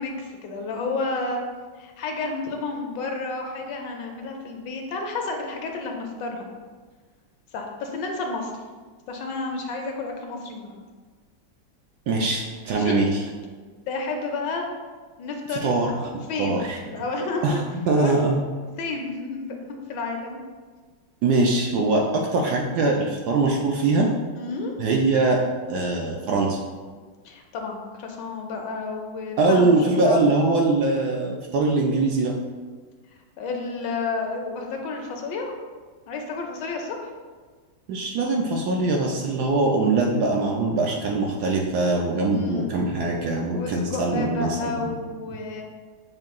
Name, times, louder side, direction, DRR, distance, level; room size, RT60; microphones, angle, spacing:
voice 1, 0.0-1.4 1.8-6.7 7.5-8.6 9.1-10.8 12.7-13.0 13.9-14.7 15.2-15.8 16.3-17.7 17.9-18.2 18.8-20.4 24.3-24.7 27.2-30.2 33.4-35.5 36.1-37.1 42.3-42.7 43.5-45.6, left 3 dB, 75° left, 2 dB, 1.3 m, -31 dB
voice 2, 12.1-13.2 15.6-16.1 16.4-16.8 17.4-18.4 21.2-24.1 24.8-25.4 25.7-26.6 29.4-32.3 37.9-44.9, right 3 dB, 75° right, 0 dB, 1.0 m, -22 dB
6.5 x 2.3 x 3.5 m, 1.4 s
omnidirectional pair, 2.0 m